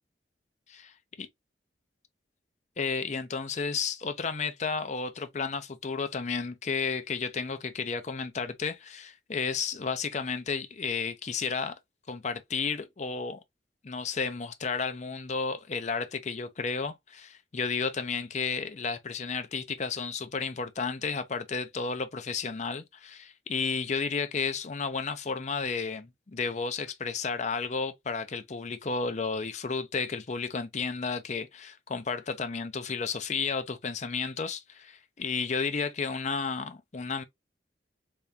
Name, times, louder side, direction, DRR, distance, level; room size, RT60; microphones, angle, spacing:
voice 1, 2.8-11.7 12.1-13.4 13.8-37.2, left 5 dB, 40° left, 0.5 m, -32 dB
3.6 x 3.4 x 2.6 m
head